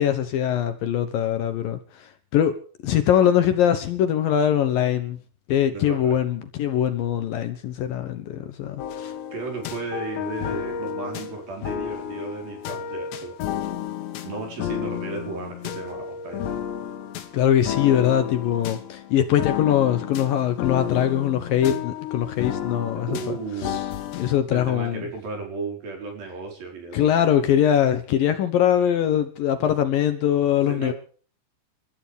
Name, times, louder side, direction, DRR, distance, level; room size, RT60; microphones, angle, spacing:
voice 1, 0.0-2.6 2.8-5.2 5.5-9.1 17.3-23.4 23.6-23.8 24.2-25.1 26.9-30.9, left 10 dB, 70° left, 2.5 m, -22 dB
voice 2, 5.7-6.2 9.3-13.3 14.2-16.6 22.9-23.8 24.5-27.1 30.7-30.9, right 4 dB, 55° right, 6.5 m, -34 dB
sound 1, 8.8-24.4, left 9 dB, 90° left, 3.8 m, -32 dB
30.0 x 13.0 x 3.5 m
omnidirectional pair, 4.9 m